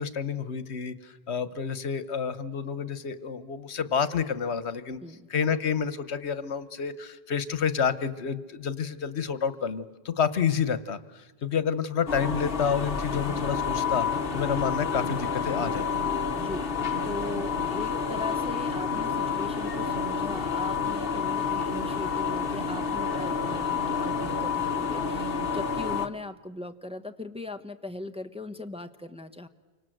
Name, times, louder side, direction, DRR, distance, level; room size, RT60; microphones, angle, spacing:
voice 1, 0.0-5.0 5.3-14.1 14.3-15.9, left 7 dB, 85° left, 14 dB, 1.4 m, -29 dB
sound 1, 12.1-26.1, left 6 dB, 60° left, 1.4 m, -29 dB
voice 2, 16.3-29.5, left 2 dB, 5° right, 7 dB, 1.0 m, -39 dB
29.0 x 25.0 x 7.9 m, 1.3 s
omnidirectional pair, 1.1 m